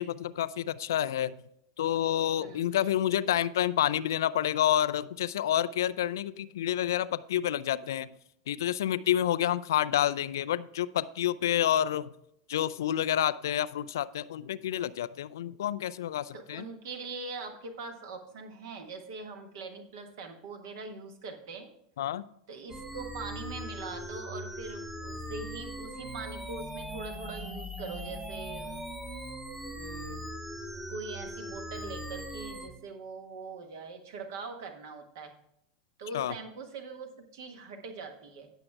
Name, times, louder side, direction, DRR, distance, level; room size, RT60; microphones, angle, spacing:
voice 1, 0.0-1.3 1.8-8.1 8.5-12.1 12.5-16.6 22.0-22.2 36.1-36.3, left 11 dB, 60° left, 16 dB, 0.4 m, -29 dB
voice 2, 2.4-2.7 16.3-21.7 22.5-28.8 29.6-30.3 30.7-35.3 36.0-38.5, right 4 dB, 55° right, 5 dB, 1.6 m, -42 dB
sound 1, 22.7-32.7, equal, 10° right, 1.1 m, -40 dB
18.0 x 6.8 x 2.3 m, 0.77 s
figure-of-eight pair, 85°, 2 cm